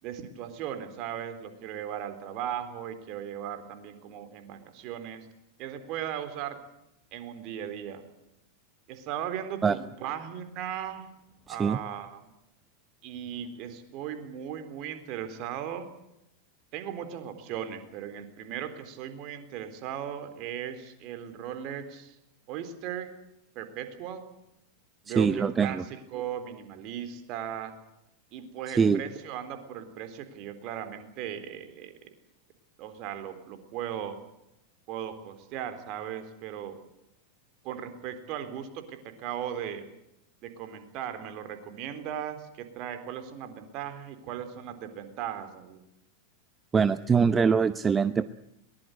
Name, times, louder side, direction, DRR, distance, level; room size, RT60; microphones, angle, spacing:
voice 1, 0.0-5.3 5.6-6.6 7.1-8.0 8.9-11.0 11.5-12.2 13.0-15.9 16.7-22.2 22.5-23.1 23.6-24.2 25.0-27.7 28.3-32.1 32.8-34.2 34.9-36.8 37.6-39.8 40.4-45.8, right 9 dB, 50° right, 9 dB, 3.9 m, -37 dB
voice 2, 11.5-11.8 25.1-25.8 28.7-29.0 46.7-48.3, right 6 dB, 20° right, 14 dB, 0.8 m, -23 dB
22.5 x 19.5 x 8.1 m, 0.84 s
hypercardioid pair, 95°, 0 cm